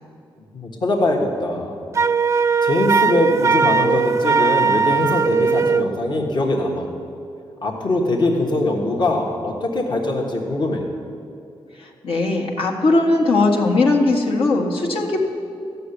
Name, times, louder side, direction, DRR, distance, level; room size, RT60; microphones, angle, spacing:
voice 1, 0.5-1.8 2.6-6.9 7.6-10.8, left 2 dB, 55° left, -1 dB, 1.5 m, -22 dB
Wind instrument woodwind instrument, 2.0-5.9, right 5 dB, 30° right, 0.4 m, -18 dB
voice 2, 11.8-15.2, left 2 dB, 75° left, -1 dB, 1.8 m, -19 dB
14.5 x 6.8 x 10.0 m, 2.5 s
wide cardioid pair, 105°, 9 cm